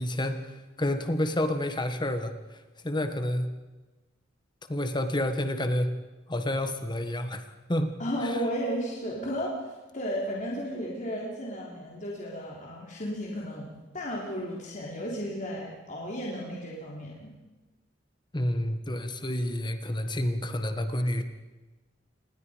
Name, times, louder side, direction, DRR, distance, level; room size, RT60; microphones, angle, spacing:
voice 1, 0.0-2.3 2.8-3.5 4.7-5.9 6.3-7.4 7.7-8.0 18.3-21.2, left 1 dB, 25° left, 8 dB, 1.5 m, -29 dB
voice 2, 8.0-13.7 13.9-17.3, equal, 40° left, -3 dB, 3.6 m, -34 dB
27.0 x 20.5 x 5.2 m, 1.2 s
head